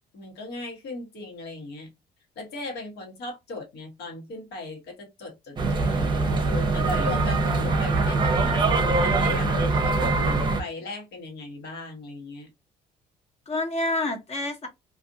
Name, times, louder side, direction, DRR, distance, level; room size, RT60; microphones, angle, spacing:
voice 1, 0.0-1.9 2.3-12.5, left 2 dB, 75° left, 1.4 m, -37 dB
sound 1, 5.6-10.6, right 3 dB, 25° right, 0.7 m, -23 dB
voice 2, 7.1-7.7 13.5-14.7, left 2 dB, 40° left, 1.1 m, -29 dB
2.6 x 2.4 x 2.6 m
cardioid pair, 110°, 17 cm